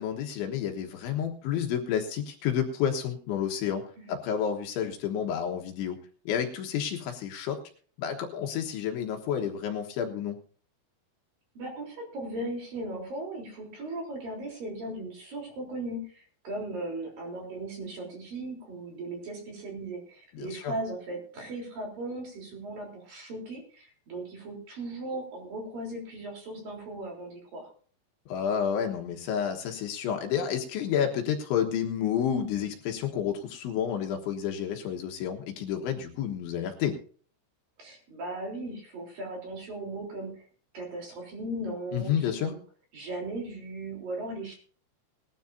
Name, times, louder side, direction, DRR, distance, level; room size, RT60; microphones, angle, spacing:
voice 1, 0.0-3.8 4.1-6.0 6.3-7.6 8.0-10.4 20.3-20.8 28.3-37.0 41.9-42.5, left 8 dB, 75° left, 3 dB, 3.5 m, -30 dB
voice 2, 11.5-27.7 37.8-40.4 40.7-42.6 42.9-44.6, right 2 dB, 45° right, 0 dB, 5.0 m, -37 dB
20.0 x 12.5 x 2.7 m, 0.43 s
omnidirectional pair, 5.8 m